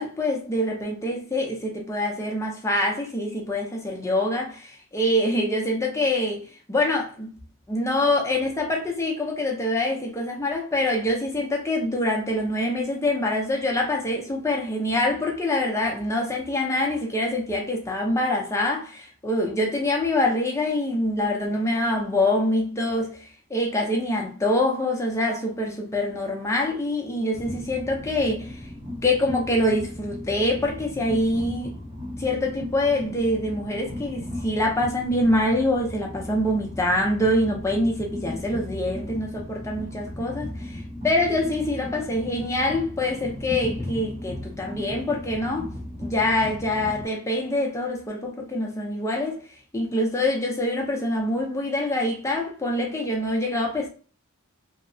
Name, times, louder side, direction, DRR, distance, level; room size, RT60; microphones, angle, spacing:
voice 1, 0.0-7.3 7.7-28.6 29.0-31.8 32.2-45.7 46.0-49.4 49.7-53.9, left 1 dB, 15° left, 0.5 m, -25 dB
Train, 27.3-47.1, left 1 dB, 25° right, 0.7 m, -36 dB
2.7 x 2.0 x 2.6 m
head